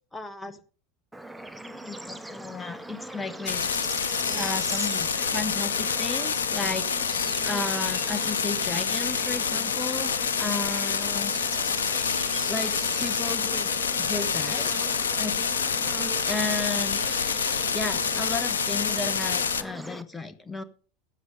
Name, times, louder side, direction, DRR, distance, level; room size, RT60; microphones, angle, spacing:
voice 1, 0.1-0.6 1.4-3.7 3.9-7.0 7.4-11.3 12.5-14.7 15.2-15.7 16.2-17.0 17.7-20.6, left 3 dB, 15° left, 11 dB, 1.1 m, -34 dB
Bird / Insect / Frog, 1.1-20.0, right 2 dB, 5° right, 1.0 m, -40 dB
sound 1, 3.5-19.6, left 6 dB, 80° left, 0.7 m, -27 dB
13.0 x 8.1 x 6.5 m, 0.41 s
figure-of-eight pair, 80°, 0 cm